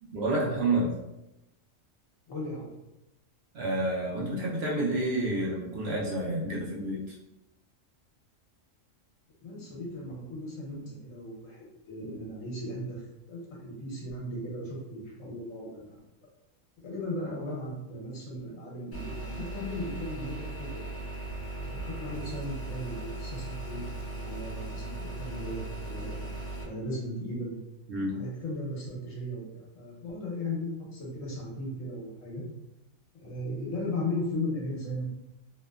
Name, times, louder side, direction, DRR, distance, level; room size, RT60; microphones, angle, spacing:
voice 1, 0.1-0.9 3.5-7.1 27.9-28.2, right 1 dB, 65° right, -5 dB, 0.7 m, -29 dB
voice 2, 2.3-2.7 9.4-15.9 16.8-20.8 21.6-23.9 24.1-26.2 26.6-27.5 28.1-32.4 33.1-35.1, left 1 dB, 80° left, -4 dB, 1.2 m, -36 dB
sound 1, 18.9-26.6, right 2 dB, 55° left, 1.1 m, -38 dB
2.9 x 2.1 x 2.2 m, 0.92 s
omnidirectional pair, 1.3 m